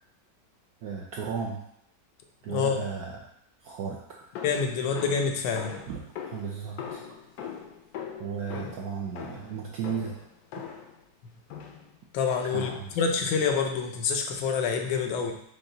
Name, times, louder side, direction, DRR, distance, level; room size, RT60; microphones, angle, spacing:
voice 1, 0.8-1.6 2.4-3.2 3.6-4.2 5.9-7.0 8.2-10.1 12.5-12.9, right 6 dB, 75° right, -1 dB, 0.9 m, -35 dB
voice 2, 2.5-2.8 4.4-5.8 8.5-8.8 12.1-15.3, left 5 dB, 85° left, 4 dB, 1.4 m, -27 dB
sound 1, 4.3-11.0 11.5-12.0 12.6-13.1, left 7 dB, 70° left, 0.9 m, -41 dB
5.4 x 2.4 x 3.8 m, 0.73 s
omnidirectional pair, 2.0 m